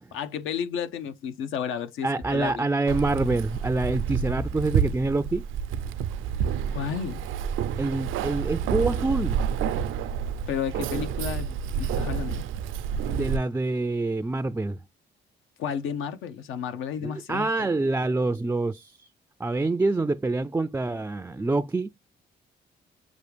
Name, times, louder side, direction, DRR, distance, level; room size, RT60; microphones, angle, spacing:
voice 1, 0.1-2.7 6.7-7.2 10.5-12.5 15.6-17.7, left 8 dB, 85° left, 0.8 m, -32 dB
voice 2, 2.0-5.5 7.8-9.4 13.1-14.8 17.0-19.1 19.4-21.9, right 2 dB, 10° right, 0.3 m, -26 dB
Keys jangling, 2.9-13.4, right 7 dB, 85° right, 0.5 m, -29 dB
6.2 x 2.5 x 3.3 m
cardioid pair, 90°, 20 cm